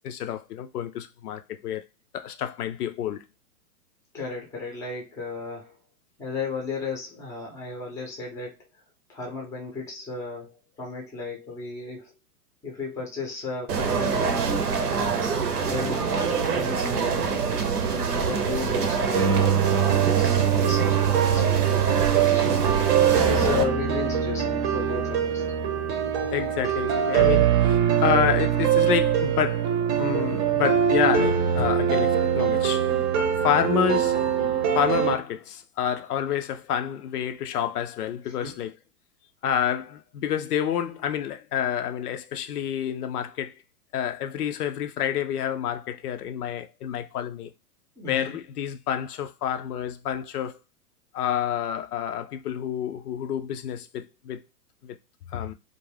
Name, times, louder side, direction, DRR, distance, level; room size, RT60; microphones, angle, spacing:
voice 1, 0.0-1.8 2.1-3.3 26.3-32.9 33.4-34.2 34.7-38.7 39.4-43.6 43.9-47.5 48.1-50.6 51.1-54.4 54.8-55.0 55.3-55.5, left 9 dB, 75° left, 0.5 m, -28 dB
voice 2, 4.1-5.8 6.2-8.6 9.1-12.1 12.6-14.3 14.8-17.4 17.9-19.4 19.7-21.9 22.3-22.8 23.1-25.4 38.2-38.6 48.0-48.4, left 4 dB, 5° left, 0.5 m, -34 dB
sound 1, 13.7-23.6, right 5 dB, 85° right, 0.7 m, -26 dB
sound 2, 19.1-35.1, right 9 dB, 40° right, 0.7 m, -23 dB
2.4 x 2.1 x 3.2 m
hypercardioid pair, 115°, 46 cm